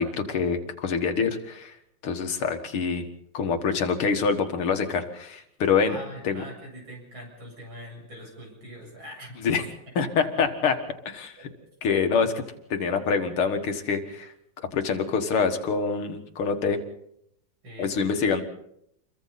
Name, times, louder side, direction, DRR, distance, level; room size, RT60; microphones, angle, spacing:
voice 1, 0.0-1.7 2.0-3.1 3.3-6.0 6.2-6.4 9.4-9.6 10.0-10.8 11.1-11.5 11.8-12.4 12.7-14.3 14.7-16.8 17.8-18.4, left 5 dB, 85° left, 6 dB, 2.6 m, -25 dB
voice 2, 5.8-9.7 9.9-10.1 11.4-11.7 17.6-17.9, equal, 70° right, -1 dB, 8.4 m, -43 dB
28.0 x 23.0 x 4.2 m, 0.75 s
omnidirectional pair, 2.3 m